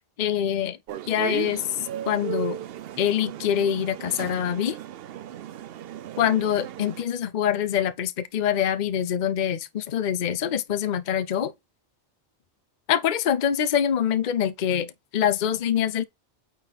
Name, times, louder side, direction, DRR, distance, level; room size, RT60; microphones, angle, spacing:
voice 1, 0.2-0.8 1.1-1.6 2.1-2.6 3.0-4.8 6.2-11.5 12.9-16.0, left 9 dB, 50° left, 0.7 m, -24 dB
sound 1, 0.9-7.0, right 11 dB, 65° right, 0.7 m, -36 dB
8.8 x 3.9 x 4.0 m
omnidirectional pair, 1.1 m